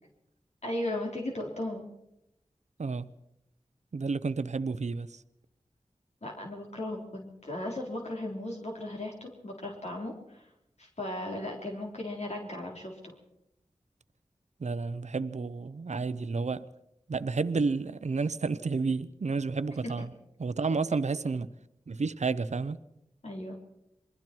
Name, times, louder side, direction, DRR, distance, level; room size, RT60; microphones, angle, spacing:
voice 1, 0.6-1.9 6.2-10.5 10.8-13.1 23.2-23.6, left 1 dB, 65° left, 3.9 m, -36 dB
voice 2, 3.9-5.2 14.6-16.7 17.1-20.1 20.4-21.5 21.9-22.8, right 4 dB, 70° right, 0.8 m, -31 dB
27.5 x 22.0 x 4.6 m
cardioid pair, 40°, 12 cm